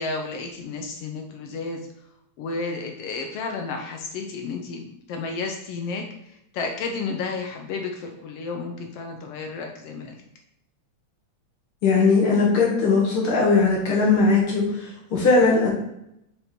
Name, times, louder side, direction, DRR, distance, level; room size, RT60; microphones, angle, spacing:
voice 1, 0.0-1.9 2.4-10.2, left 4 dB, 75° left, 3 dB, 1.4 m, -32 dB
voice 2, 11.8-15.7, left 4 dB, 55° left, -2 dB, 1.7 m, -19 dB
5.1 x 4.4 x 4.3 m, 0.80 s
omnidirectional pair, 3.3 m